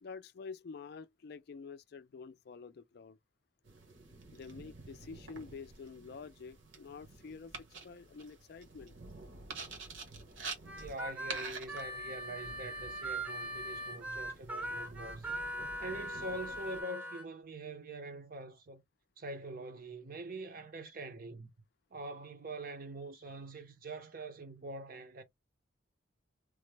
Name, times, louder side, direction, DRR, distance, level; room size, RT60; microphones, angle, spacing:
voice 1, 0.0-3.2 4.3-7.5 7.8-8.9, left 5 dB, 50° left, 0.3 m, -48 dB
sound 1, 3.6-16.8, right 4 dB, 70° right, 1.1 m, -49 dB
Harmonica, 10.7-17.2, right 1 dB, 5° right, 0.6 m, -41 dB
voice 2, 10.7-15.3 15.8-18.8 19.2-21.5 21.9-25.2, right 2 dB, 45° right, 0.6 m, -44 dB
3.2 x 2.1 x 3.2 m
head